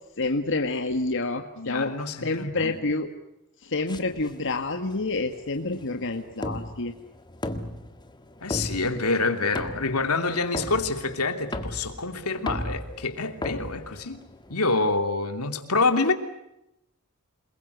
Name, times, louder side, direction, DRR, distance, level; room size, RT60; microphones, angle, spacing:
voice 1, 0.2-1.9 2.2-3.1 3.6-6.9, left 3 dB, 60° left, 5 dB, 1.8 m, -28 dB
voice 2, 1.6-2.8 8.4-14.2 14.5-16.1, left 3 dB, 80° left, 7 dB, 2.9 m, -26 dB
sound 1, 3.9-14.5, left 1 dB, 20° left, 1.7 m, -37 dB
28.5 x 21.5 x 8.2 m, 0.86 s
head